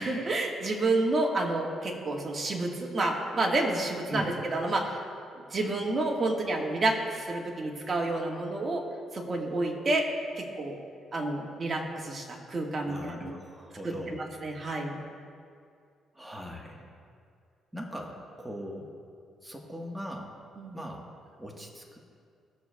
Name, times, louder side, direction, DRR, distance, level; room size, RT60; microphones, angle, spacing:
voice 1, 0.0-5.0 5.5-8.8 9.1-10.1 10.3-10.8 11.1-13.4 13.8-13.9 14.4-15.0 20.6-20.8, right 2 dB, 35° right, 0 dB, 1.6 m, -29 dB
voice 2, 12.9-14.2 16.1-16.9 17.7-18.9 19.4-20.3 20.7-21.1 21.4-22.0, equal, 5° right, -1 dB, 1.4 m, -40 dB
19.0 x 6.5 x 2.3 m, 2.3 s
cardioid pair, 90°, 0 cm